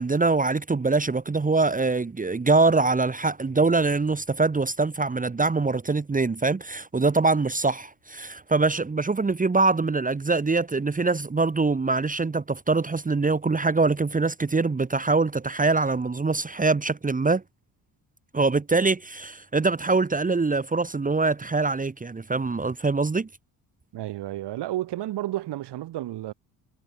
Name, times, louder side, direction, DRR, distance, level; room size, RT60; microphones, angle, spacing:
voice 1, 0.0-17.4 18.3-23.3, right 3 dB, 20° right, 1.3 m, -23 dB
voice 2, 23.9-26.3, right 14 dB, 75° right, 4.7 m, -31 dB
supercardioid pair, 75°, 41 cm